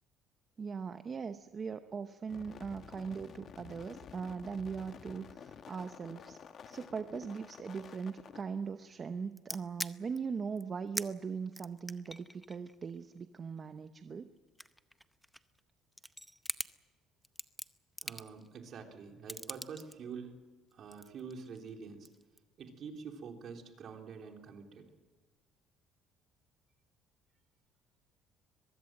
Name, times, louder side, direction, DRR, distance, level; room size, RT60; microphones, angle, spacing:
voice 1, 0.6-6.4 6.7-14.3, right 5 dB, 30° right, 9 dB, 0.9 m, -40 dB
sound 1, 2.3-8.4, left 7 dB, 45° left, 1.1 m, -51 dB
sound 2, 9.4-10.2 10.6-10.7 10.9-11.1 11.5-13.9 14.4-15.6 15.9-16.7 17.2-18.5 19.3-19.9 20.7-21.7 22.0-22.4, equal, ahead, 0.7 m, -42 dB
voice 2, 18.0-20.4 20.7-22.1 22.6-24.9, right 6 dB, 50° right, 3 dB, 3.7 m, -46 dB
23.0 x 21.0 x 7.7 m, 1.4 s
cardioid pair, 140°, 0 cm